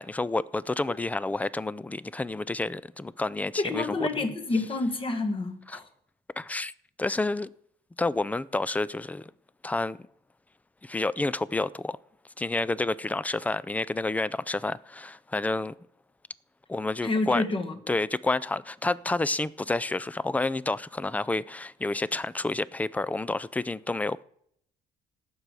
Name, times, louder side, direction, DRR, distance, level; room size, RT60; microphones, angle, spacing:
voice 1, 0.0-4.1 5.7-5.8 6.4-6.7 7.0-7.5 8.0-9.3 9.6-10.0 10.8-12.0 12.4-15.7 16.7-17.4 17.9-24.2, left 2 dB, 10° left, 0.4 m, -29 dB
voice 2, 3.6-5.9 17.0-17.7, left 2 dB, 30° left, 1.7 m, -28 dB
18.0 x 6.9 x 4.8 m
cardioid pair, 110°, 17 cm